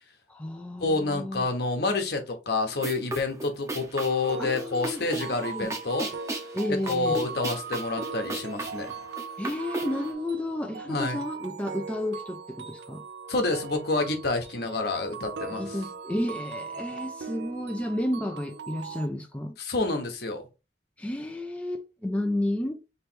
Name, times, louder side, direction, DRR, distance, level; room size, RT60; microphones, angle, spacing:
voice 1, 0.3-1.5 4.4-5.0 5.5-5.7 6.5-7.2 9.4-13.0 15.5-19.6 21.0-22.8, left 1 dB, 10° left, 0.4 m, -32 dB
voice 2, 0.8-6.1 6.9-8.9 10.9-11.2 13.3-15.8 19.6-20.4, left 3 dB, 65° left, 1.1 m, -28 dB
sound 1, 2.7-10.1, right 2 dB, 20° right, 0.8 m, -36 dB
sound 2, 4.3-19.1, right 5 dB, 75° right, 0.5 m, -39 dB
3.2 x 3.1 x 4.4 m
head